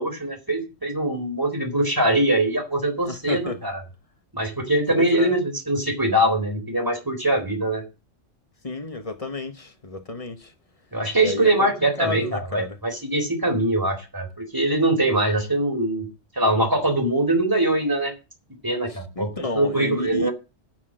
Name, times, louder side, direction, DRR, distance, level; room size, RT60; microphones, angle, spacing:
voice 1, 0.0-3.8 4.3-7.8 10.9-16.1 16.3-18.1 18.6-20.3, right 1 dB, 15° right, 4.0 m, -22 dB
voice 2, 3.0-3.7 4.9-5.4 8.6-10.5 11.2-11.7 12.0-12.8 18.9-20.3, left 3 dB, 30° left, 1.2 m, -31 dB
10.5 x 6.0 x 7.7 m
omnidirectional pair, 1.3 m